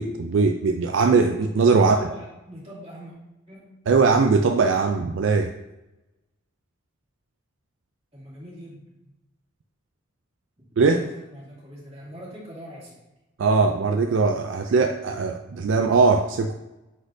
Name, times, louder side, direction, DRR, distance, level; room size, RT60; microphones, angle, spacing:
voice 1, 0.0-2.0 3.9-5.5 10.8-11.0 13.4-16.5, right 4 dB, 65° right, 6 dB, 0.4 m, -20 dB
voice 2, 1.7-3.1 3.5-3.8 8.1-9.1 10.6-13.0, equal, 30° right, -7 dB, 2.3 m, -43 dB
9.4 x 4.3 x 2.6 m, 0.98 s
head